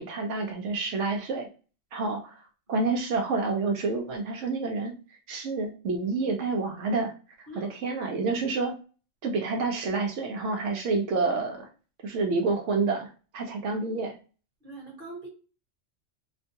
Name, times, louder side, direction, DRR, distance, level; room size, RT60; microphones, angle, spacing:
voice 1, 0.0-1.5 1.9-2.3 2.7-4.9 5.3-7.1 7.4-8.7 9.2-11.7 12.0-14.1, right 3 dB, 75° right, 2 dB, 0.9 m, -28 dB
voice 2, 14.6-15.3, right 2 dB, 45° right, -1 dB, 1.1 m, -42 dB
2.5 x 2.3 x 2.7 m, 0.35 s
omnidirectional pair, 1.3 m